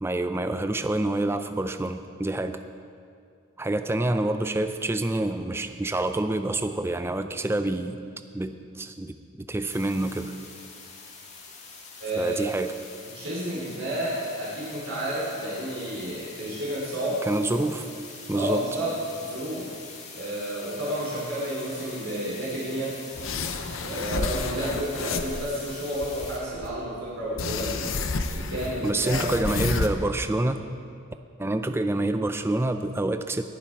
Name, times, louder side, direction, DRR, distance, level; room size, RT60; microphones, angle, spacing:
voice 1, 0.0-2.6 3.6-8.0 8.3-10.3 12.2-12.7 17.2-17.9 18.3-18.7 28.8-30.6 31.4-33.4, right 2 dB, 10° right, 9 dB, 0.4 m, -27 dB
sound 1, 9.6-26.4, left 4 dB, 30° left, 1.7 m, -44 dB
voice 2, 12.0-12.4 13.1-17.2 18.3-18.9 19.2-19.6 20.1-22.9 23.8-27.9 28.3-29.2, right 1 dB, 65° right, -8 dB, 3.5 m, -31 dB
sound 2, 23.2-25.4 25.9-26.7 27.4-29.9, left 4 dB, 65° left, 0.7 m, -30 dB
20.0 x 7.4 x 4.6 m, 2.4 s
head